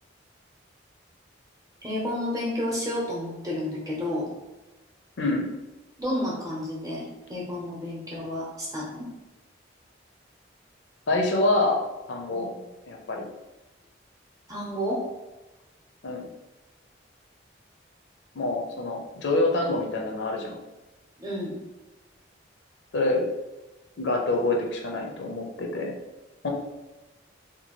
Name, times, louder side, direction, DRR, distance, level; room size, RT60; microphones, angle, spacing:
voice 1, 1.8-4.3 6.0-9.1 12.3-12.6 14.5-15.0 21.2-21.6, left 1 dB, 20° right, -4 dB, 0.7 m, -31 dB
voice 2, 11.1-11.8 12.1-12.5 12.9-13.3 16.0-16.3 18.3-20.6 22.9-23.3 24.0-25.9 26.4-26.5, left 2 dB, 70° left, 1 dB, 0.5 m, -26 dB
2.7 x 2.3 x 2.9 m, 1.1 s
head